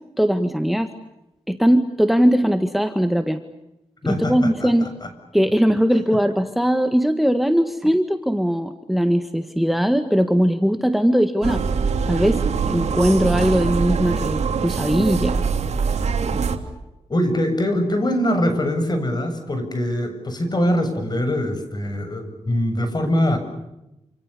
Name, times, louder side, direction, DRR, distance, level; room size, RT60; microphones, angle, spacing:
voice 1, 0.2-0.9 1.5-3.4 4.1-4.9 5.3-11.6 12.1-15.4, equal, ahead, 9 dB, 1.8 m, -20 dB
voice 2, 4.0-4.7 5.0-5.1 17.1-23.4, equal, 35° left, 8 dB, 7.5 m, -23 dB
sound 1, 11.4-16.6, right 5 dB, 75° right, 3.1 m, -23 dB
28.5 x 28.0 x 6.9 m, 0.93 s
cardioid pair, 80°, 11 cm